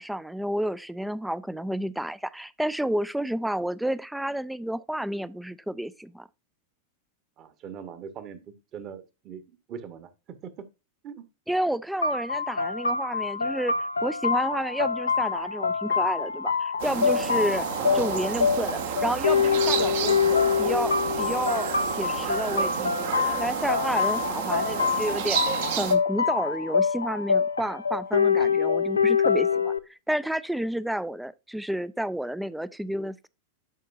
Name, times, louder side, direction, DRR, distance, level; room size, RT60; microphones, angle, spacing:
voice 1, 0.0-6.3 11.5-13.7 14.0-17.7 17.9-25.4 25.7-33.3, right 1 dB, 5° right, 0.4 m, -30 dB
voice 2, 7.4-10.5 11.0-11.2 17.7-18.4, right 7 dB, 35° right, 1.3 m, -40 dB
sound 1, 12.0-29.8, left 6 dB, 75° left, 0.6 m, -25 dB
sound 2, 16.8-26.0, right 9 dB, 55° right, 1.2 m, -31 dB
11.0 x 5.3 x 2.6 m
figure-of-eight pair, 90°, 0 cm